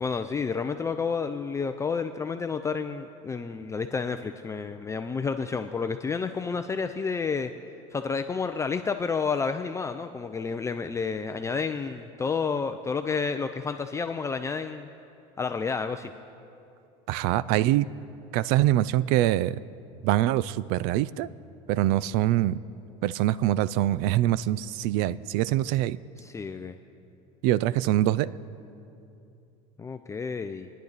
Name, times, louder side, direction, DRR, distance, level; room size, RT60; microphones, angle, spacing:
voice 1, 0.0-7.5 7.9-14.9 15.4-16.1 26.2-26.8 29.8-30.7, left 5 dB, 15° left, 7 dB, 0.5 m, -30 dB
voice 2, 17.1-17.9 18.3-19.6 20.0-21.3 21.7-22.6 23.0-26.0 27.4-28.3, right 14 dB, 70° right, 19 dB, 0.4 m, -24 dB
27.5 x 10.0 x 4.1 m, 2.8 s
supercardioid pair, 115°, 17 cm